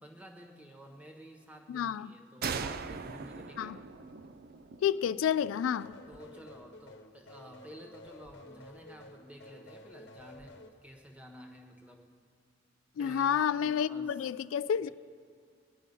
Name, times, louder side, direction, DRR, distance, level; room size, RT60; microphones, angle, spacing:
voice 1, 0.0-3.8 6.1-12.1 13.0-14.3 14.8-14.9, equal, 5° right, 1.3 m, -52 dB
voice 2, 1.7-2.1 3.6-3.8 4.8-5.9 13.0-14.9, left 8 dB, 85° left, 0.3 m, -30 dB
sound 1, 2.4-5.9, right 5 dB, 50° right, 0.5 m, -40 dB
sound 2, 5.4-10.7, left 2 dB, 60° left, 1.1 m, -52 dB
20.5 x 10.0 x 5.4 m
head